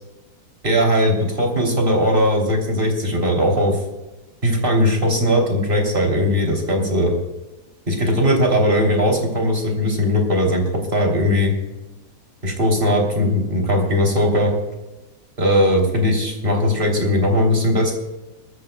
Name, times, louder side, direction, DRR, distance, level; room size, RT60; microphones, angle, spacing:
voice 1, 0.6-3.8 4.4-7.1 7.9-10.6 10.9-11.5 12.4-14.5 15.4-17.9, equal, 30° right, 0 dB, 3.1 m, -19 dB
21.0 x 14.5 x 2.2 m, 1.1 s
omnidirectional pair, 1.7 m